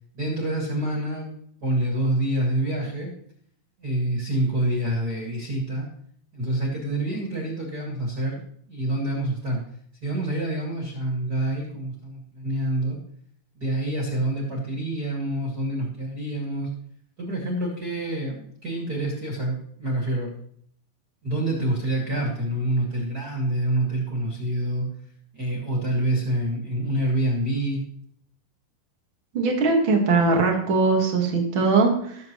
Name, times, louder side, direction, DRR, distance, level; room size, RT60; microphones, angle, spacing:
voice 1, 0.1-1.3 1.6-3.1 3.8-5.9 6.3-8.4 8.7-9.6 10.0-13.0 13.5-16.7 17.2-20.3 21.2-24.9 25.3-27.9, right 1 dB, 30° right, -3 dB, 2.0 m, -27 dB
voice 2, 29.3-32.2, right 3 dB, 75° right, 1 dB, 1.1 m, -21 dB
20.0 x 7.6 x 3.1 m, 0.64 s
omnidirectional pair, 5.2 m